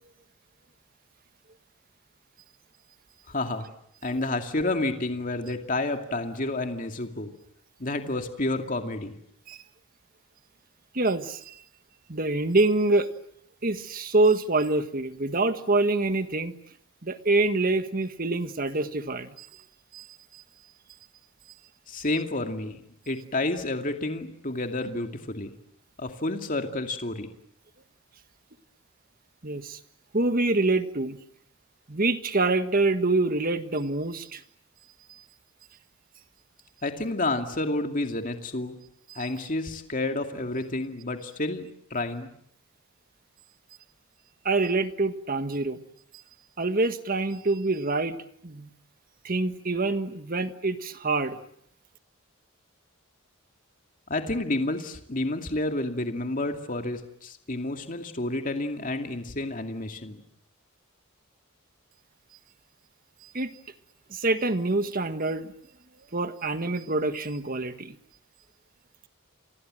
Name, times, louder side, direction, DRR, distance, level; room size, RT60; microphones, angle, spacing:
voice 1, 3.3-3.7 4.0-7.3 7.8-9.2 21.9-25.5 26.0-27.3 36.8-38.8 39.1-42.3 54.1-60.2, left 2 dB, 40° left, 5 dB, 2.4 m, -30 dB
voice 2, 10.9-11.6 12.1-13.1 13.6-16.5 17.0-19.5 19.9-20.1 20.3-20.4 29.4-29.8 30.1-31.2 31.9-34.4 35.1-35.2 39.1-39.3 44.4-45.8 46.6-48.2 48.4-48.7 49.2-51.4 63.2-63.5 64.1-65.5 66.1-67.9, right 2 dB, 45° right, 10 dB, 1.6 m, -26 dB
30.0 x 25.0 x 7.7 m, 0.71 s
head